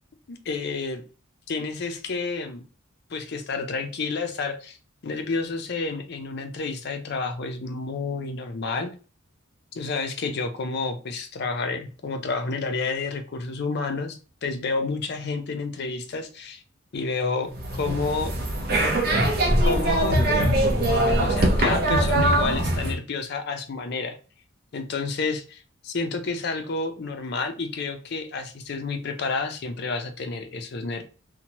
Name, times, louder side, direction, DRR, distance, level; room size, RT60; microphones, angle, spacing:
voice 1, 0.3-1.0 1.5-2.6 3.1-4.8 5.0-8.9 9.7-16.6 16.9-18.3 19.6-20.2 21.1-24.2 24.7-31.0, left 4 dB, 50° left, 7 dB, 0.4 m, -30 dB
sound 1, 17.5-23.0, right 1 dB, 50° right, 0.6 m, -22 dB
2.7 x 2.1 x 2.9 m, 0.35 s
head